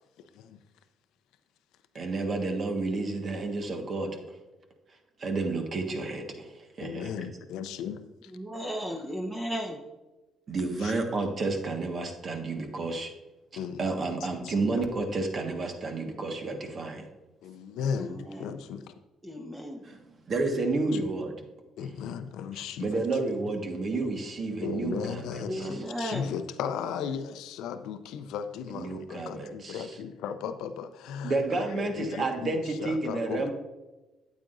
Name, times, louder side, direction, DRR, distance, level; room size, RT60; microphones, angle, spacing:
voice 1, 1.9-4.2 5.2-7.1 10.5-13.1 13.8-17.1 19.8-21.4 22.8-25.7 28.7-29.9 31.2-33.5, right 3 dB, 50° right, 4 dB, 1.5 m, -31 dB
voice 2, 6.8-8.0 9.0-9.1 10.8-10.9 13.6-13.8 14.4-14.8 17.4-18.8 21.8-22.9 24.6-33.5, left 7 dB, 80° left, 10 dB, 0.5 m, -36 dB
voice 3, 8.3-9.8 17.9-18.5 19.2-19.8 25.5-26.3, equal, 15° right, 0 dB, 1.2 m, -35 dB
9.1 x 8.5 x 2.6 m, 1.1 s
supercardioid pair, 65°, 0 cm